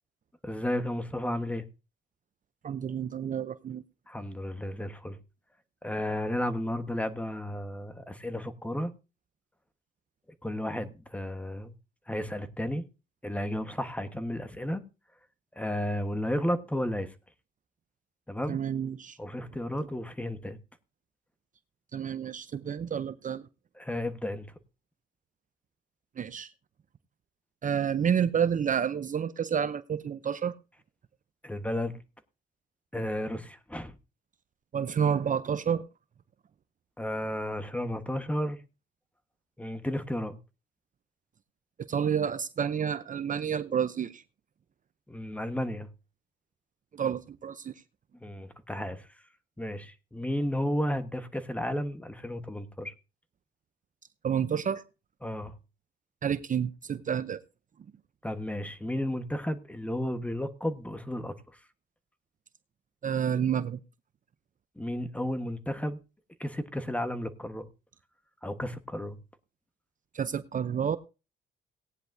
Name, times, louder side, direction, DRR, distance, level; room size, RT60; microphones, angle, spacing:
voice 1, 0.4-1.6 4.1-5.2 5.8-8.9 10.4-11.7 12.1-12.8 13.2-14.8 15.6-17.1 18.3-18.6 19.2-20.6 23.8-24.5 31.4-32.0 32.9-33.9 37.0-38.6 39.6-40.4 45.1-45.9 48.2-49.1 49.6-52.9 55.2-55.5 58.2-61.3 64.8-66.0 66.4-67.7 68.4-69.2, left 1 dB, 5° left, 1.3 m, -33 dB
voice 2, 2.6-3.8 18.5-19.2 21.9-23.5 26.2-26.5 27.6-30.6 34.7-35.8 41.9-44.2 46.9-47.7 54.2-54.8 56.2-57.4 63.0-63.8 70.1-71.0, right 8 dB, 40° right, 0.6 m, -29 dB
18.0 x 10.0 x 2.7 m
cardioid pair, 90°, 20 cm